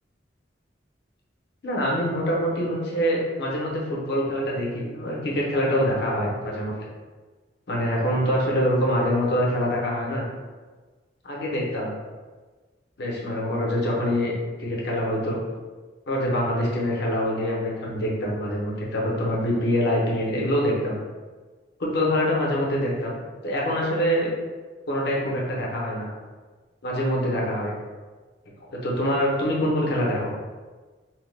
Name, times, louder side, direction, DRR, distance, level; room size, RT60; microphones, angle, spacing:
voice 1, 1.6-6.7 7.7-10.2 11.2-11.9 13.0-14.3 14.6-15.4 16.1-21.0 21.8-23.2 23.4-24.3 24.9-26.1 26.8-27.7 28.8-30.3, equal, 65° left, -4 dB, 0.8 m, -25 dB
2.8 x 2.1 x 3.2 m, 1.4 s
head